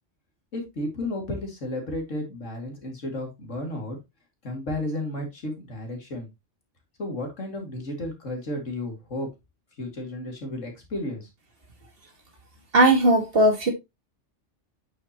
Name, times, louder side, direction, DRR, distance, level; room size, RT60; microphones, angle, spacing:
voice 1, 0.5-4.0 4.4-6.3 7.0-9.3 9.8-11.3, left 1 dB, 90° left, 2.9 m, -33 dB
voice 2, 12.7-13.7, right 1 dB, 50° right, 2.1 m, -18 dB
8.6 x 7.3 x 3.0 m
omnidirectional pair, 1.2 m